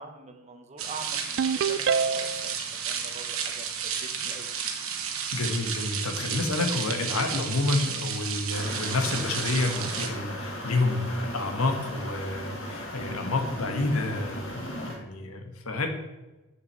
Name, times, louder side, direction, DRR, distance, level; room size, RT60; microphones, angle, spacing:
voice 1, 0.0-2.3 2.9-3.7 3.9-4.5 13.0-13.4, right 3 dB, 35° right, 6 dB, 1.0 m, -44 dB
sound 1, 0.8-10.1, right 7 dB, 75° right, 1.3 m, -32 dB
Ringtone, 1.4-2.5, right 6 dB, 55° right, 0.3 m, -25 dB
voice 2, 5.3-15.9, left 2 dB, 80° left, 5 dB, 1.3 m, -29 dB
sound 2, 8.5-15.0, left 1 dB, 65° left, 1.8 m, -37 dB
6.5 x 5.9 x 7.4 m, 1.1 s
head